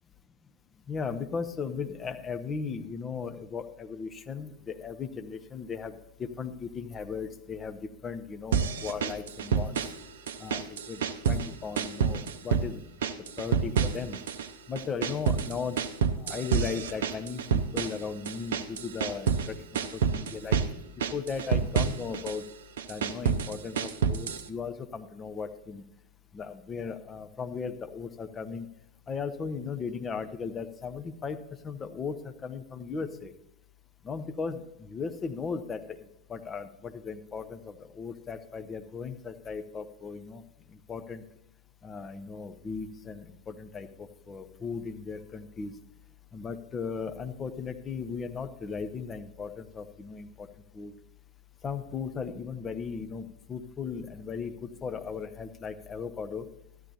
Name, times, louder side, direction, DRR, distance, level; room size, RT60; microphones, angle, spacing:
voice 1, 0.9-9.8 10.4-11.0 11.3-12.8 13.4-14.2 14.7-15.8 16.2-20.6 21.1-22.5 22.9-25.8 26.3-28.7 29.1-31.4 31.6-33.3 34.0-40.4 40.7-41.2 41.8-45.7 46.3-50.5 50.7-50.9 51.6-56.5, left 5 dB, 20° left, 8 dB, 0.7 m, -37 dB
sound 1, 8.5-10.0 10.3-11.5 11.8-12.7 13.0-14.5 14.8-19.5 19.7-20.7 21.0-22.4 22.8-24.5, right 7 dB, 60° right, 0.6 m, -28 dB
13.0 x 11.0 x 2.8 m, 0.82 s
figure-of-eight pair, 90°, 0 cm